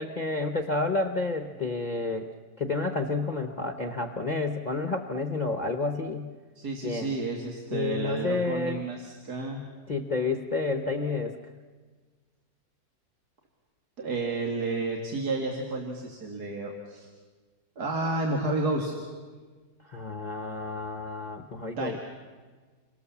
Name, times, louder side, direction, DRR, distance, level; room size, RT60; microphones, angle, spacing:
voice 1, 0.0-2.3 2.6-6.3 6.8-7.1 7.7-8.8 9.9-11.4 19.8-22.0, left 3 dB, 35° left, 6 dB, 0.9 m, -30 dB
voice 2, 6.6-9.6 14.0-17.1 17.8-18.9 21.8-22.0, right 2 dB, 75° right, 0 dB, 2.7 m, -31 dB
28.5 x 23.0 x 7.2 m, 1.4 s
omnidirectional pair, 1.7 m